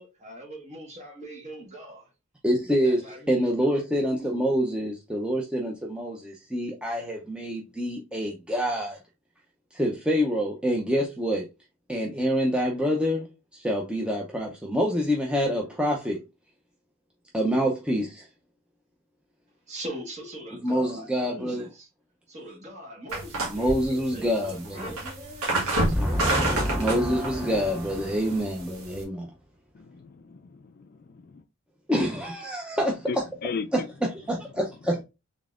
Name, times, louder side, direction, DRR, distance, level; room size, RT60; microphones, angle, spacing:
voice 1, 0.0-2.1 2.8-3.8 19.7-21.9 22.3-26.5, right 1 dB, 35° right, 1.3 m, -42 dB
voice 2, 2.4-9.0 9.7-11.5 11.9-16.2 17.3-18.3 20.6-21.7 23.4-24.9 25.9-29.3 31.9-33.2 33.7-35.0, equal, 5° right, 0.5 m, -26 dB
sound 1, 23.1-29.0, right 1 dB, 85° right, 1.4 m, -30 dB
voice 3, 29.7-31.4 33.1-33.7, left 4 dB, 45° left, 0.4 m, -36 dB
3.9 x 3.5 x 2.4 m
head